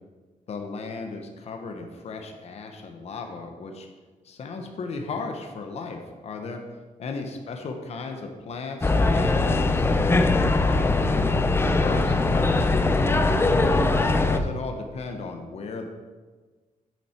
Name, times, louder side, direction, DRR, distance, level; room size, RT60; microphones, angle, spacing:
voice 1, 0.5-3.9 4.2-6.6 7.0-10.2 10.6-13.8 14.3-15.9, left 3 dB, 50° left, 4 dB, 1.0 m, -36 dB
sound 1, 8.8-14.4, left 2 dB, 15° left, 0.6 m, -21 dB
9.4 x 7.2 x 4.5 m, 1.3 s
wide cardioid pair, 150°, 14 cm